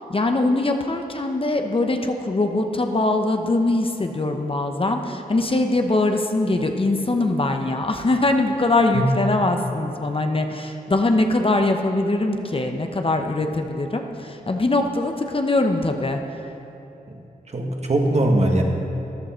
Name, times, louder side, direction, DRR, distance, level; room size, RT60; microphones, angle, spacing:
voice 1, 0.1-16.2, left 2 dB, 35° left, 4 dB, 1.0 m, -22 dB
voice 2, 17.5-18.6, right 1 dB, 45° right, 1 dB, 1.8 m, -20 dB
14.0 x 11.0 x 4.5 m, 2.9 s
cardioid pair, 55°, 16 cm